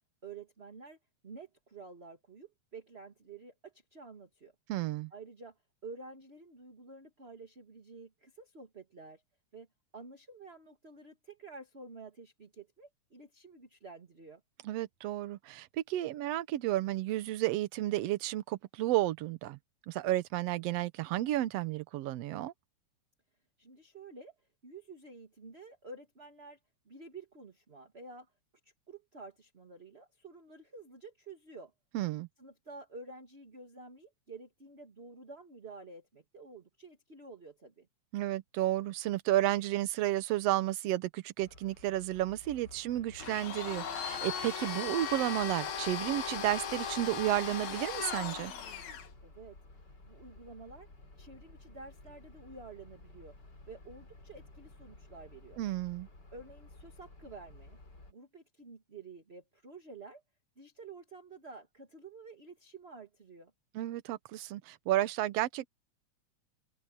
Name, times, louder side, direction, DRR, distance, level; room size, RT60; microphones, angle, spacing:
voice 1, 0.2-1.0 1.2-4.5 5.1-9.2 9.5-9.7 9.9-14.4 23.6-24.3 24.6-26.6 26.9-28.3 28.6-31.7 32.4-37.9 49.2-49.6 49.8-50.9 51.2-55.6 56.3-57.8 58.1-60.2 60.6-63.5, right 3 dB, 25° right, 1.9 m, -50 dB
voice 2, 4.7-5.1 14.6-19.6 19.9-22.5 31.9-32.3 38.1-48.5 55.6-56.1 63.8-65.7, right 15 dB, 70° right, 1.7 m, -32 dB
sound 1, 41.4-58.1, left 2 dB, 35° left, 5.4 m, -55 dB
Domestic sounds home sounds, 43.2-49.1, left 7 dB, 70° left, 3.2 m, -38 dB
open air
omnidirectional pair, 3.3 m